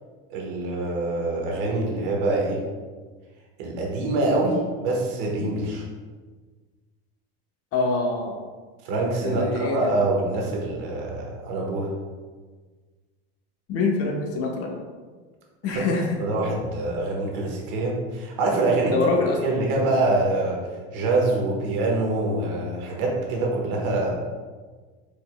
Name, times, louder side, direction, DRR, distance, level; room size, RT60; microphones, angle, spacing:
voice 1, 0.3-2.6 3.6-5.8 8.8-11.9 15.7-15.8 16.2-19.0 19.4-20.6 20.9-24.1, right 2 dB, 65° right, -1 dB, 1.3 m, -25 dB
voice 2, 7.7-8.4 9.2-9.9 13.7-14.8 15.6-16.2 18.9-19.4, left 3 dB, 50° left, 1 dB, 1.0 m, -25 dB
5.0 x 4.3 x 2.2 m, 1.4 s
supercardioid pair, 100°, 30 cm